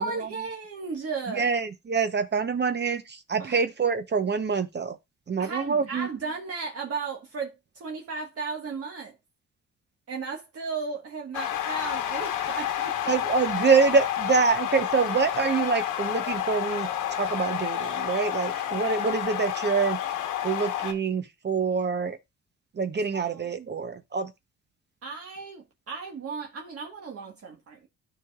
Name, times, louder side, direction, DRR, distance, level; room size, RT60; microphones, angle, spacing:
voice 1, 0.0-1.5 3.4-3.6 5.4-9.1 10.1-13.1 18.3-18.4 23.1-23.7 25.0-27.9, right 4 dB, 50° right, 1.5 m, -35 dB
voice 2, 1.3-5.0 5.3-6.1 13.1-16.9 17.2-20.0 20.4-22.2 22.7-24.3, right 5 dB, 35° right, 0.8 m, -26 dB
sound 1, 11.3-20.9, left 11 dB, 90° left, 1.3 m, -30 dB
13.0 x 4.9 x 2.4 m
cardioid pair, 90°, 30 cm